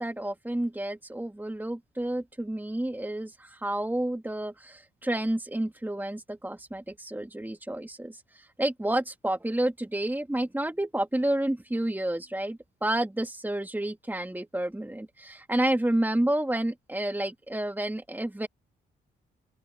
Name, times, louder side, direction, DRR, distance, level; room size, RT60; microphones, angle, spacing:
voice 1, 0.0-18.5, right 1 dB, 10° right, 2.2 m, -30 dB
open air
supercardioid pair, 55°, 20 cm